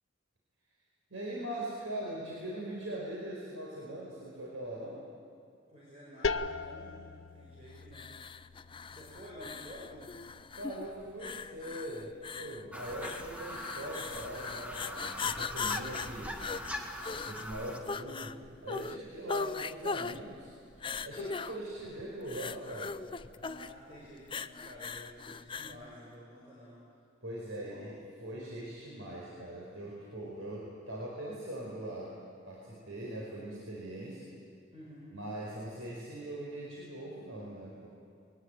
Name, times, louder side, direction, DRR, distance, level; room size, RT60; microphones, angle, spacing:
voice 1, 1.1-5.0 10.5-12.1 12.3-16.4 17.2-20.5 21.0-23.0 27.2-32.1 32.5-34.3 35.1-37.9, right 1 dB, 80° right, -4 dB, 4.9 m, -41 dB
voice 2, 5.7-7.0 7.3-8.2 8.9-10.2 21.1-21.5 23.4-26.9 27.5-27.8 34.7-35.1, equal, 30° right, -6 dB, 5.4 m, -50 dB
sound 1, 6.2-11.8, left 4 dB, 70° left, 0.7 m, -40 dB
sound 2, 7.9-25.8, left 5 dB, 25° left, 0.5 m, -40 dB
sound 3, 12.7-17.8, equal, 5° right, 2.0 m, -42 dB
22.0 x 19.5 x 9.1 m, 2.5 s
head